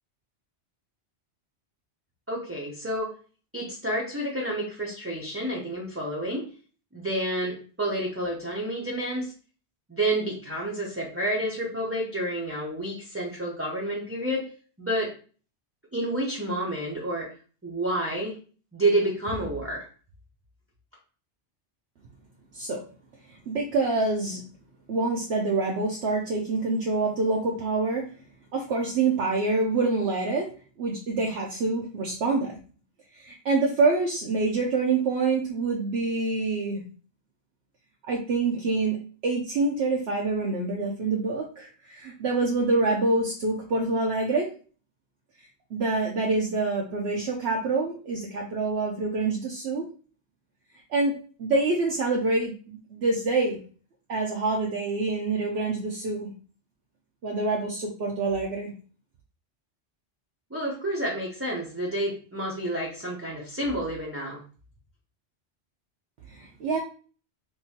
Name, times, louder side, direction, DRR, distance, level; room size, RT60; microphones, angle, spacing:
voice 1, 2.3-3.1 3.5-6.5 6.9-9.3 9.9-14.4 14.8-15.1 15.9-17.3 17.6-18.4 18.7-19.9 60.5-64.4, right 1 dB, 15° right, -4 dB, 0.6 m, -29 dB
voice 2, 23.5-24.4 24.9-28.0 28.5-30.5 30.8-32.5 33.1-36.8 38.1-39.0 39.2-44.5 45.7-49.8 50.9-51.1 51.4-53.6 54.1-56.3 57.2-58.7 66.3-66.8, right 3 dB, 70° right, -1 dB, 0.9 m, -26 dB
3.6 x 2.6 x 2.8 m, 0.39 s
omnidirectional pair, 1.2 m